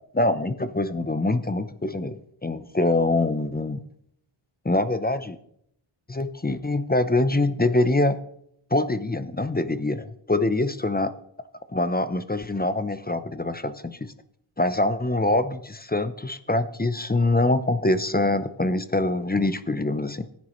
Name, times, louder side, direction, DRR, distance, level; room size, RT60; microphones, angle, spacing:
voice 1, 0.1-3.8 4.6-5.4 6.1-8.2 8.7-11.1 11.7-14.1 14.6-20.3, left 2 dB, 20° left, 11 dB, 0.7 m, -24 dB
15.0 x 9.5 x 3.1 m, 0.70 s
wide cardioid pair, 70°, 50 cm